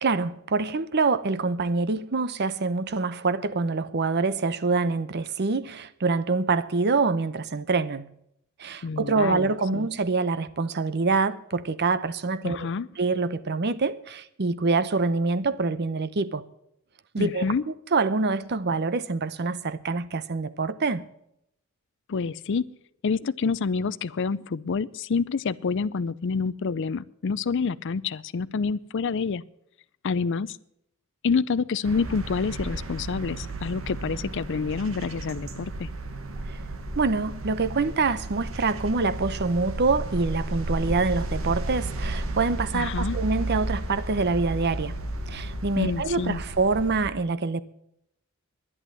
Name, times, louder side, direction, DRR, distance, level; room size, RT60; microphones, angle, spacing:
voice 1, 0.0-8.1 8.6-12.7 13.0-16.4 17.1-21.1 36.5-36.6 37.0-44.9 45.3-47.6, right 3 dB, 50° right, 0.7 m, -25 dB
voice 2, 8.8-9.9 12.4-12.9 17.2-17.6 22.1-22.6 23.0-29.4 30.0-30.6 31.2-35.9 42.7-43.2 45.8-46.4, left 5 dB, 60° left, 0.5 m, -28 dB
sound 1, 31.8-47.1, right 2 dB, 70° right, 1.4 m, -33 dB
11.0 x 11.0 x 7.6 m
head